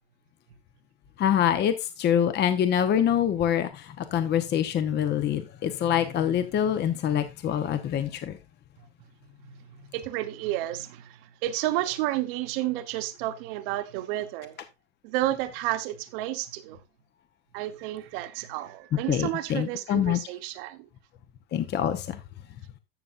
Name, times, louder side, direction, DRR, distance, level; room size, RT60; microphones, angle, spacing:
voice 1, 1.2-8.4 19.1-20.2 21.5-22.2, left 9 dB, 35° left, 1.0 m, -25 dB
voice 2, 9.9-14.6 15.0-16.8 17.5-20.9, right 15 dB, 65° right, 1.2 m, -31 dB
13.0 x 6.8 x 2.5 m
supercardioid pair, 120°, 31 cm